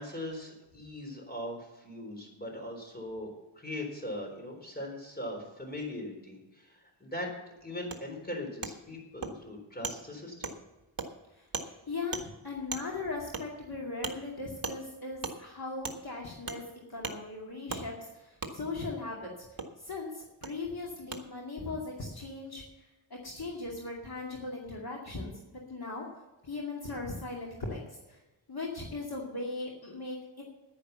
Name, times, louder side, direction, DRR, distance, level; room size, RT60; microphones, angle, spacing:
voice 1, 0.0-3.3 3.6-7.3 7.6-10.5, left 1 dB, 20° left, 1 dB, 3.9 m, -40 dB
Wood, 7.9-8.0 8.6-8.7 9.2-9.3 9.8-10.0 10.4-10.6 11.0-11.1 11.5-11.7 12.1-12.2 12.7-12.8 13.3-13.4 14.0-14.1 14.6-14.8 15.2-15.4 15.8-16.0 16.5-16.6 17.0-17.2 17.7-17.8 18.4-18.5 19.6-19.7 20.4-20.5 21.1-21.2, right 4 dB, 45° right, 1.5 m, -36 dB
voice 2, 11.4-16.6 16.9-19.3 19.8-22.6 23.2-26.0 26.4-28.2 28.5-30.4, left 3 dB, 50° left, -2 dB, 2.4 m, -38 dB
10.5 x 10.0 x 6.8 m, 1.1 s
wide cardioid pair, 125°, 47 cm